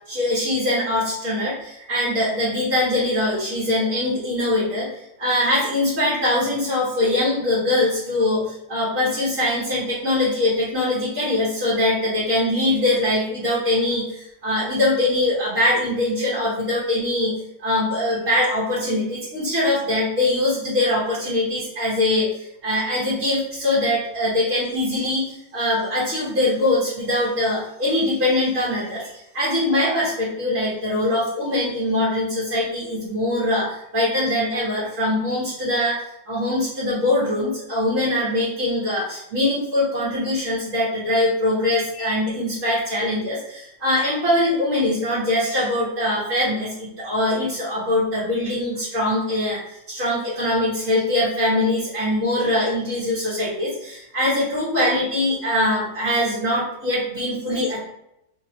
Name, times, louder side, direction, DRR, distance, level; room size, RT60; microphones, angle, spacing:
voice 1, 0.1-57.8, left 1 dB, 70° right, -8 dB, 1.5 m, -22 dB
3.4 x 2.3 x 3.9 m, 0.81 s
omnidirectional pair, 1.4 m